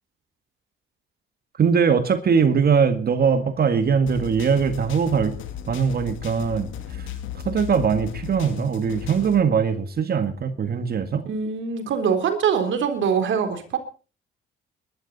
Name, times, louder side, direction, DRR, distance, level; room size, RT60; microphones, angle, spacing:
voice 1, 1.6-5.3 5.7-6.7 7.0-7.1 7.5-11.2, right 6 dB, 50° right, 9 dB, 1.9 m, -21 dB
sound 1, 4.1-9.4, left 9 dB, 85° left, 2.6 m, -35 dB
voice 2, 11.3-13.8, right 7 dB, 75° right, 7 dB, 3.9 m, -23 dB
21.5 x 12.5 x 4.2 m, 0.36 s
cardioid pair, 90°, 20 cm